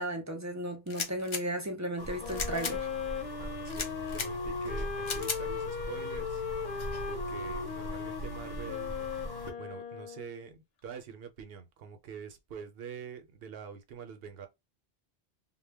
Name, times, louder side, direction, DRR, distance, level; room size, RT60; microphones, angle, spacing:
voice 1, 0.0-2.9, right 1 dB, 25° right, 0.4 m, -35 dB
sound 1, 0.9-1.4 2.3-2.8 3.7-4.3 5.0-5.4, left 5 dB, 50° left, 0.4 m, -35 dB
sound 2, 2.0-9.5, equal, 25° left, 0.7 m, -41 dB
Wind instrument woodwind instrument, 2.2-10.5, left 5 dB, 80° left, 0.9 m, -38 dB
voice 2, 3.4-6.4 7.1-9.0 9.6-14.5, right 7 dB, 75° right, 0.8 m, -45 dB
2.2 x 2.1 x 3.3 m
omnidirectional pair, 1.0 m